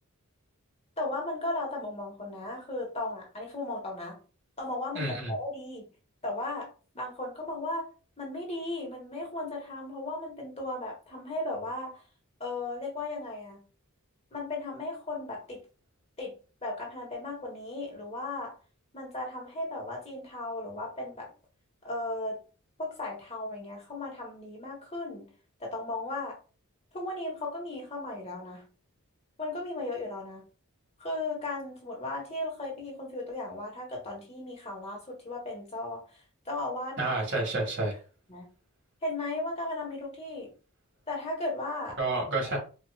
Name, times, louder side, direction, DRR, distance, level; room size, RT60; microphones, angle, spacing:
voice 1, 1.0-4.2 4.6-5.9 6.2-7.9 8.2-12.0 12.4-13.6 14.3-15.6 16.2-16.3 16.6-18.5 18.9-21.3 21.8-22.4 22.8-25.2 25.6-26.4 26.9-28.6 29.4-30.4 31.0-37.2 38.3-38.5 39.0-40.5 41.1-42.0, left 2 dB, 30° left, -1 dB, 1.3 m, -36 dB
voice 2, 4.9-5.3 37.0-38.0 42.0-42.6, right 2 dB, 55° right, -2 dB, 1.8 m, -29 dB
4.5 x 2.6 x 2.3 m, 0.35 s
head